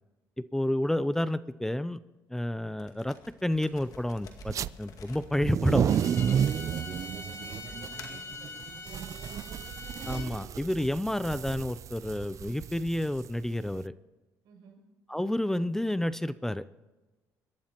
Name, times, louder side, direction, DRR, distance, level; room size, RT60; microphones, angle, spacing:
voice 1, 0.4-2.0 2.3-3.2 3.4-6.0 10.1-13.9 15.1-16.7, left 1 dB, 5° left, 15 dB, 0.5 m, -30 dB
sound 1, 2.8-7.1 7.7-8.3, left 5 dB, 60° left, 2.0 m, -50 dB
sound 2, 4.4-4.7 5.3-13.8, right 9 dB, 50° right, 0.4 m, -32 dB
Bowed string instrument, 5.8-10.3, left 3 dB, 40° left, 2.1 m, -43 dB
voice 2, 6.4-9.8 14.4-14.8, right 5 dB, 80° right, 0 dB, 6.6 m, -56 dB
25.5 x 13.0 x 3.0 m, 1.1 s
cardioid pair, 105°, 7 cm